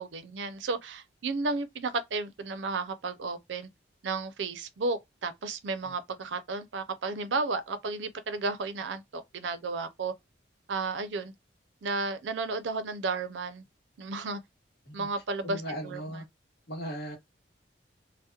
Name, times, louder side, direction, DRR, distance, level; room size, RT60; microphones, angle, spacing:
voice 1, 0.0-3.7 4.0-10.1 10.7-11.3 11.8-13.6 14.0-14.4 14.9-16.2, right 3 dB, 85° right, 0.5 m, -33 dB
voice 2, 15.4-16.2 16.7-17.2, equal, 60° left, 1.1 m, -37 dB
2.8 x 2.0 x 2.3 m
head